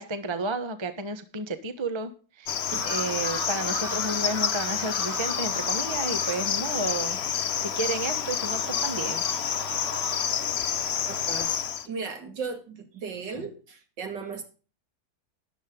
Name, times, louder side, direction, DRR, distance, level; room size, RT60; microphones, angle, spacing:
voice 1, 0.0-2.1 2.4-7.2 7.6-9.2, right 3 dB, 20° right, 10 dB, 0.9 m, -32 dB
Cricket, 2.5-11.9, left 8 dB, 55° left, 0.7 m, -29 dB
sound 1, 2.7-10.3, right 1 dB, 45° right, 5.4 m, -39 dB
voice 2, 11.1-11.6 11.8-14.4, right 5 dB, 65° right, 5 dB, 2.8 m, -36 dB
13.0 x 10.5 x 3.8 m, 0.36 s
omnidirectional pair, 2.1 m